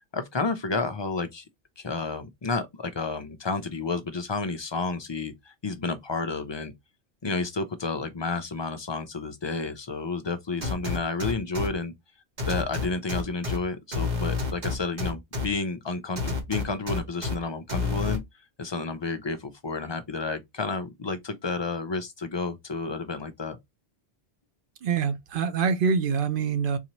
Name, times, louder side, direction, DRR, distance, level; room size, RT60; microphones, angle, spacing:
voice 1, 0.1-1.4 1.8-6.7 7.2-11.9 12.5-18.2 18.6-23.6, left 3 dB, 45° left, 0.3 m, -31 dB
sound 1, 10.6-11.7 12.4-13.6 13.9-15.5 16.2-17.3 17.7-18.2, left 4 dB, 40° right, 1.2 m, -28 dB
voice 2, 24.8-26.8, right 6 dB, 60° right, 0.7 m, -25 dB
3.9 x 2.8 x 2.9 m
omnidirectional pair, 1.1 m